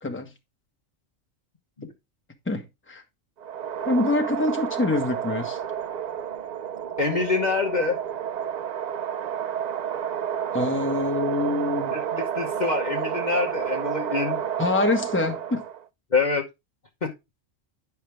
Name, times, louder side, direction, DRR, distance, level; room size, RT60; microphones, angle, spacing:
voice 1, 0.0-0.3 2.5-2.6 2.9-3.0 3.8-5.6 10.5-12.0 14.6-15.6, left 2 dB, 10° left, 1.2 m, -25 dB
sound 1, 3.4-15.8, right 9 dB, 75° right, 0.4 m, -30 dB
voice 2, 7.0-8.0 11.9-14.4 16.1-16.5 17.0-17.1, left 4 dB, 35° left, 1.1 m, -25 dB
10.0 x 5.8 x 3.4 m
omnidirectional pair, 1.4 m